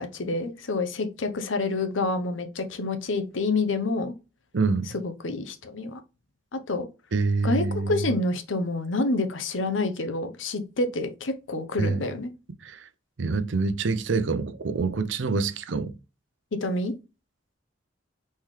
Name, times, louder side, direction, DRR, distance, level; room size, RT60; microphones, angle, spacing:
voice 1, 0.0-4.1 4.9-6.0 6.5-6.9 7.4-12.3 16.5-16.9, left 2 dB, 80° left, 0.8 m, -28 dB
voice 2, 4.5-5.0 7.1-8.1 11.8-12.1 12.6-12.9 13.2-16.0, right 4 dB, 70° right, 0.5 m, -26 dB
4.3 x 3.7 x 3.1 m
head